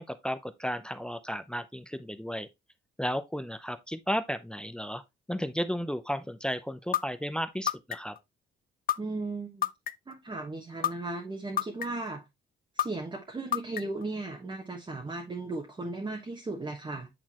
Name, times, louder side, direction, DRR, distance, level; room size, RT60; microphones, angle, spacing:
voice 1, 0.0-2.5 3.0-5.0 5.3-8.1, equal, 5° left, 0.6 m, -33 dB
sound 1, 6.9-7.0 7.7-8.2 8.9-9.0 9.6-10.1 10.8-10.9 11.6-12.1 12.8-12.9 13.5-14.0, left 11 dB, 45° left, 0.5 m, -27 dB
voice 2, 9.0-9.7 10.1-12.3 12.7-17.1, right 2 dB, 25° right, 1.3 m, -36 dB
8.7 x 4.0 x 3.0 m
cardioid pair, 90°, 20 cm